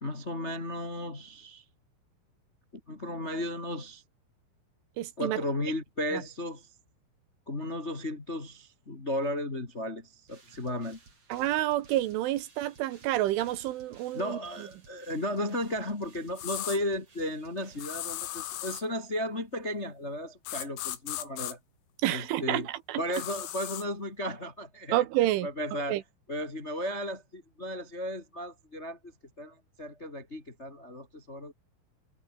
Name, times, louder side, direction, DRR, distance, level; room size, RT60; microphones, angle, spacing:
voice 1, 0.0-1.6 2.9-4.0 5.2-6.7 7.5-11.0 14.1-21.6 22.1-22.7 23.0-25.0 25.4-26.0 26.3-29.0 29.4-31.5, left 1 dB, 25° left, 1.4 m, -35 dB
voice 2, 5.0-5.4 6.1-6.2 11.3-14.4 22.0-23.0 24.9-25.5 25.9-26.0, right 14 dB, 75° right, 3.5 m, -29 dB
sound 1, 10.3-19.1, right 4 dB, 30° right, 5.5 m, -58 dB
sound 2, 16.4-16.8 17.8-18.9 20.5-21.5 23.1-23.9, left 14 dB, 85° left, 4.6 m, -36 dB
omnidirectional pair, 5.9 m